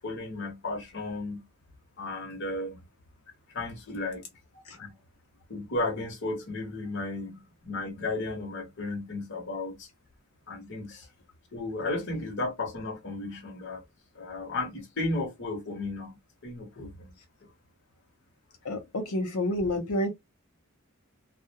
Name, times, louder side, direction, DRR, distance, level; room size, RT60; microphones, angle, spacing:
voice 1, 0.0-1.4 2.0-2.8 3.5-4.3 4.5-4.9 5.5-9.9 10.5-11.1 11.5-13.8 14.1-17.1 17.4-17.5, left 2 dB, 55° left, 0.9 m, -34 dB
voice 2, 18.6-20.1, left 1 dB, 85° left, 0.6 m, -29 dB
2.3 x 2.0 x 2.8 m
head